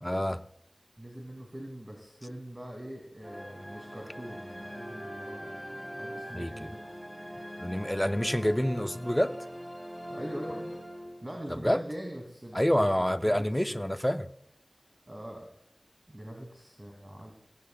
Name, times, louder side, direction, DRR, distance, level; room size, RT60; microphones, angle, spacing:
voice 1, 0.0-0.4 6.3-6.7 7.6-9.4 11.5-11.8 12.5-14.2, equal, 10° left, 10 dB, 0.6 m, -27 dB
voice 2, 1.0-5.6 6.0-6.8 8.2-8.4 10.1-10.7 11.2-13.9 15.1-15.5 16.1-17.3, equal, 35° right, 0 dB, 2.8 m, -43 dB
sound 1, 3.2-11.6, equal, 10° right, 3.7 m, -42 dB
17.0 x 16.5 x 2.4 m, 0.78 s
wide cardioid pair, 45°, 0 cm